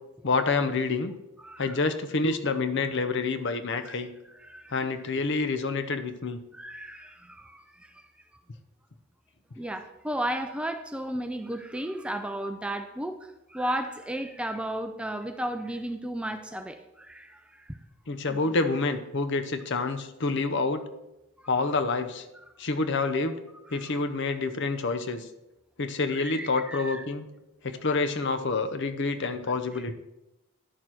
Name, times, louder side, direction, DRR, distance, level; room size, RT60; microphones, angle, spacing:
voice 1, 0.2-1.1 1.6-4.1 4.7-6.4 18.1-20.8 21.5-22.2 22.6-23.3 23.7-25.3 25.8-27.3 27.6-29.9, left 3 dB, 55° left, 10 dB, 0.7 m, -28 dB
voice 2, 1.4-1.8 3.8-4.0 4.3-4.8 6.5-8.0 9.6-17.8 18.3-18.6 19.9-20.0 21.4-21.5 23.7-24.0 26.1-27.0 29.7-29.8, right 1 dB, 5° right, 7 dB, 0.4 m, -34 dB
10.5 x 6.5 x 4.4 m, 0.94 s
head